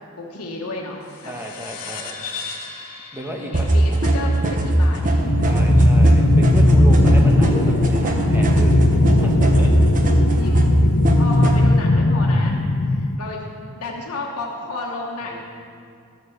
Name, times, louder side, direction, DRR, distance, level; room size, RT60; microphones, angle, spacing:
voice 1, 0.2-1.3 3.4-5.4 10.3-10.7 11.1-12.6 12.9-13.5 13.7-15.4, left 2 dB, 90° left, -2 dB, 1.3 m, -32 dB
sound 1, 1.0-5.9, left 5 dB, 65° left, 1.8 m, -37 dB
voice 2, 1.2-2.2 3.1-3.7 5.4-8.7 9.1-9.7 12.5-12.9 15.2-15.4, equal, 10° right, 0 dB, 1.2 m, -32 dB
sound 2, 3.5-11.6, right 1 dB, 35° right, 1.0 m, -18 dB
sound 3, 5.2-13.2, left 2 dB, 45° left, 0.5 m, -19 dB
13.5 x 6.9 x 7.1 m, 2.4 s
head